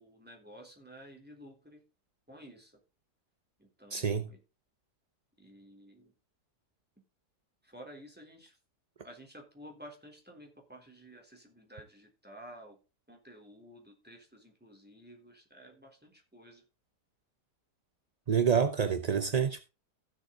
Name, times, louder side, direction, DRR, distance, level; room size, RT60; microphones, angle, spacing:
voice 1, 0.0-1.8 2.3-2.8 3.6-4.4 5.4-6.1 7.6-8.6 9.0-12.8 13.1-16.6, equal, 5° right, 3.6 m, -52 dB
voice 2, 3.9-4.3 18.3-19.6, right 7 dB, 40° right, 0.5 m, -27 dB
15.5 x 7.3 x 3.9 m
omnidirectional pair, 1.8 m